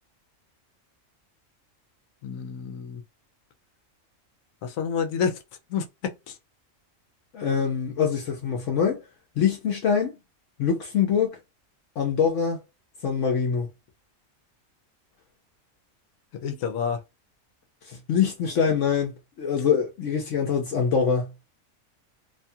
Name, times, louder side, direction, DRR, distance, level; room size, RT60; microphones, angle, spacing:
voice 1, 2.2-3.0 4.6-5.4 5.7-6.4 16.4-17.0, left 6 dB, 90° left, 1.1 m, -29 dB
voice 2, 7.3-9.0 9.4-10.1 10.6-11.4 12.0-12.6 13.0-13.7 17.9-19.1 19.4-21.3, left 7 dB, 70° left, 1.0 m, -24 dB
2.7 x 2.3 x 2.6 m
omnidirectional pair, 1.4 m